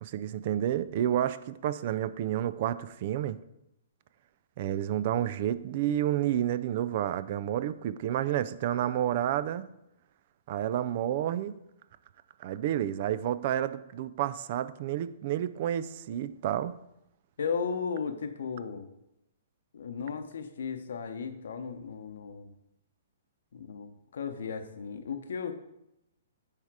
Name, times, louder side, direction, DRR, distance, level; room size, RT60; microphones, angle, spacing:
voice 1, 0.0-3.4 4.6-9.7 10.5-11.6 12.4-16.8, right 11 dB, 45° right, 0.4 m, -30 dB
voice 2, 17.4-18.9 19.7-22.5 23.5-25.5, left 6 dB, 75° left, 0.8 m, -35 dB
9.7 x 3.6 x 4.7 m
hypercardioid pair, 150°, 0 cm